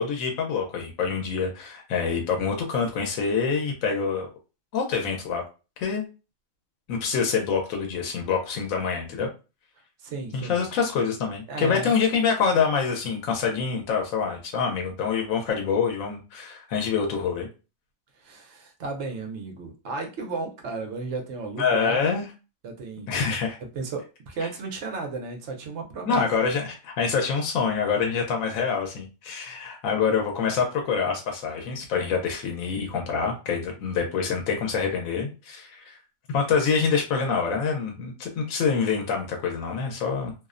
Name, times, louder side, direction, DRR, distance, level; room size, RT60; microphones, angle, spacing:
voice 1, 0.0-4.3 4.7-5.4 5.8-6.1 6.9-9.3 10.3-17.5 21.6-22.2 23.1-23.6 26.0-36.0 36.3-40.3, left 5 dB, 90° left, 2 dB, 1.0 m, -26 dB
voice 2, 10.0-10.7 11.5-11.9 18.2-22.0 22.6-23.2 23.7-26.3, right 3 dB, 65° right, 3 dB, 0.8 m, -34 dB
2.6 x 2.0 x 2.3 m, 0.31 s
omnidirectional pair, 1.4 m